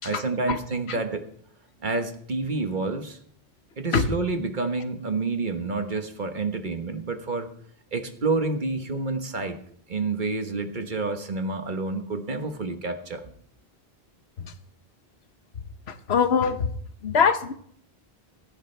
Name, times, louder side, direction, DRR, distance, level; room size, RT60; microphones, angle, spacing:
voice 1, 0.0-1.3 1.8-3.2 3.8-7.5 7.9-9.6 9.9-13.2, right 3 dB, 50° right, 7 dB, 1.4 m, -28 dB
voice 2, 15.9-16.7 17.0-17.5, left 6 dB, 85° left, 10 dB, 1.3 m, -23 dB
16.0 x 15.0 x 3.3 m, 0.63 s
omnidirectional pair, 1.0 m